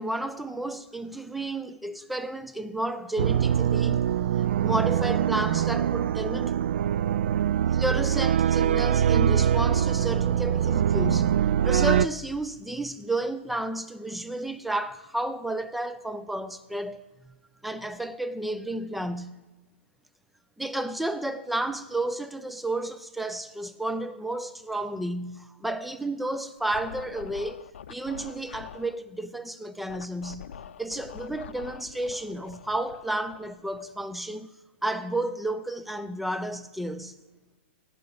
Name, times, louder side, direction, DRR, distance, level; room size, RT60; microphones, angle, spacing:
voice 1, 0.0-4.2 4.6-6.6 7.7-17.3 17.6-19.4 20.6-30.5 30.8-34.5 34.8-37.1, right 1 dB, ahead, 0.4 m, -32 dB
sound 1, 3.2-12.1, right 9 dB, 65° right, 0.4 m, -23 dB
Scratching (performance technique), 26.6-29.0 29.9-34.2, left 8 dB, 70° left, 0.6 m, -45 dB
16.0 x 6.1 x 9.4 m
hypercardioid pair, 160°, 7 cm